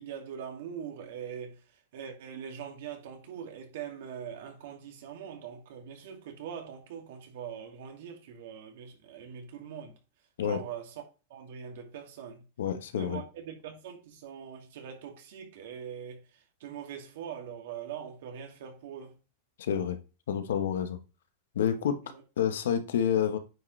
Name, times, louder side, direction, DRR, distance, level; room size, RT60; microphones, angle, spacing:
voice 1, 0.0-1.6 1.9-10.0 10.4-10.9 11.3-12.4 13.0-19.2 22.0-22.2, right 8 dB, 70° right, 2.3 m, -42 dB
voice 2, 12.6-13.2 19.6-20.0 20.3-21.0 21.5-22.0 22.4-23.4, left 8 dB, 85° left, 1.1 m, -28 dB
9.2 x 5.0 x 3.2 m
supercardioid pair, 150°, 0 cm